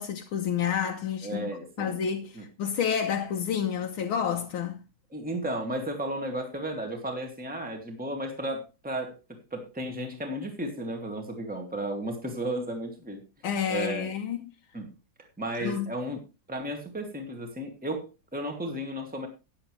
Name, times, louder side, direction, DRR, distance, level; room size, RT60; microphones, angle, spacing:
voice 1, 0.0-1.5 1.8-4.8 13.4-14.4 15.6-15.9, left 8 dB, 75° left, 1.9 m, -29 dB
voice 2, 1.2-2.0 2.4-2.5 5.1-9.2 9.5-13.2 13.7-14.1 14.7-14.9 15.4-16.2 16.5-19.3, right 1 dB, 5° right, 2.2 m, -34 dB
15.0 x 10.0 x 3.3 m
omnidirectional pair, 2.3 m